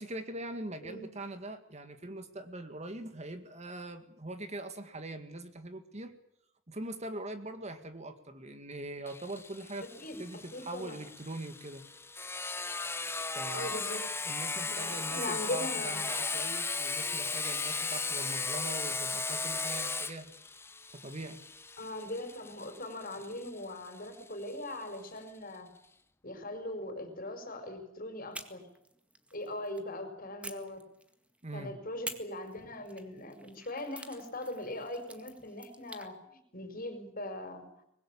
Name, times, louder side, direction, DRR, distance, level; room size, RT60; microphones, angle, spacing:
voice 1, 0.0-6.1 6.7-9.9 10.2-11.8 13.3-13.8 14.3-20.3 20.9-21.4 31.4-31.8, right 1 dB, 35° right, 9 dB, 2.0 m, -42 dB
Sawing, 9.1-24.5, left 4 dB, 15° left, 0.9 m, -36 dB
voice 2, 10.0-11.0 13.5-14.0 14.6-16.0 21.8-25.7 26.2-28.7 29.3-30.8 31.5-37.7, left 1 dB, 45° left, 8 dB, 5.4 m, -40 dB
sound 1, 28.3-29.9 30.4-31.4 32.0-36.1, right 1 dB, 5° right, 1.9 m, -48 dB
24.5 x 20.5 x 8.7 m, 0.74 s
head